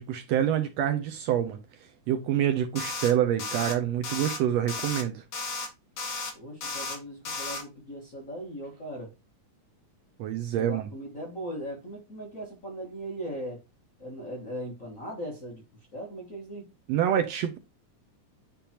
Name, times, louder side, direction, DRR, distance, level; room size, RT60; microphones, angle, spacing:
voice 1, 0.0-1.6 2.1-5.2 10.2-10.9 16.9-17.6, right 10 dB, 80° right, 1.6 m, -26 dB
sound 1, 2.8-3.1 3.4-3.7 4.0-4.4 4.7-5.0 5.3-5.7 6.0-6.3 6.6-7.0 7.3-7.6, left 3 dB, 60° left, 1.6 m, -34 dB
voice 2, 6.3-9.1 10.6-13.6 14.0-15.6 15.9-16.7, right 1 dB, 45° left, 1.1 m, -39 dB
10.0 x 3.5 x 2.8 m
omnidirectional pair, 3.5 m